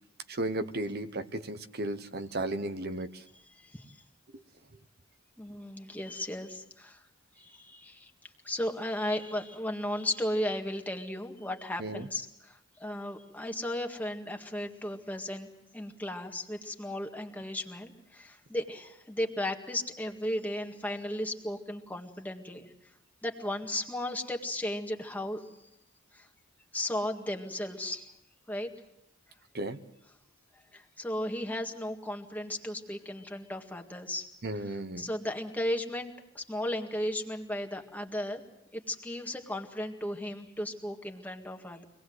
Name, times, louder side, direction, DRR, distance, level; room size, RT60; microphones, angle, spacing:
voice 1, 0.3-3.2 4.3-4.4 11.8-12.1 29.5-29.8 34.4-35.1, right 2 dB, 50° right, 9 dB, 1.0 m, -34 dB
voice 2, 3.6-4.0 5.4-7.0 7.4-15.5 15.7-22.7 23.2-25.5 26.1-26.3 26.7-28.1 28.5-28.7 30.7-34.3 34.7-38.4 38.7-41.8, left 1 dB, 10° left, 3 dB, 1.9 m, -35 dB
25.0 x 19.0 x 7.9 m, 0.83 s
head